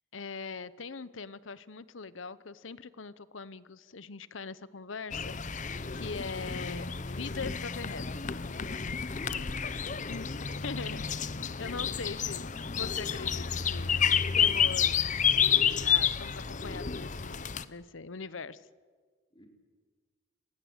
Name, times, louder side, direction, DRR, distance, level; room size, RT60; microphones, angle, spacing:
voice 1, 0.1-5.6 5.9-8.1 10.0-10.3 10.6-14.9 15.8-18.6, left 4 dB, 90° left, 17 dB, 0.9 m, -42 dB
sound 1, 5.1-17.6, left 7 dB, 40° left, 0.8 m, -30 dB
voice 2, 9.1-10.0 19.3-19.5, left 1 dB, 25° left, 2 dB, 4.4 m, -47 dB
27.0 x 20.0 x 8.1 m, 1.5 s
head